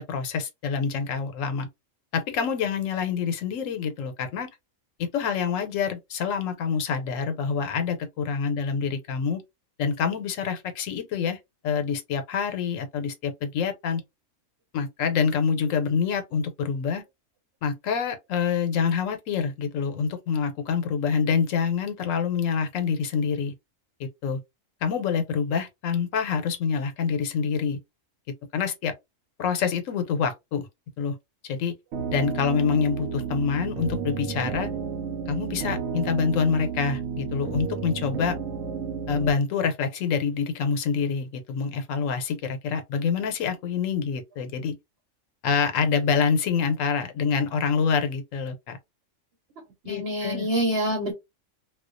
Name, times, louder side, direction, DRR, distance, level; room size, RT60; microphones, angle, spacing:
voice 1, 0.0-1.7 2.1-4.5 5.0-9.4 9.8-11.4 11.6-14.0 14.7-17.0 17.6-23.5 24.0-24.4 24.8-27.8 28.5-28.9 29.4-30.7 31.0-31.1 31.4-31.7 32.1-34.7 35.3-38.4 39.1-44.7 45.4-48.8 49.9-50.5, left 6 dB, 85° left, 1.0 m, -26 dB
sound 1, 31.9-39.3, right 6 dB, 85° right, 1.0 m, -32 dB
voice 2, 49.8-51.1, right 1 dB, 60° right, 1.0 m, -26 dB
2.3 x 2.2 x 2.4 m
omnidirectional pair, 1.3 m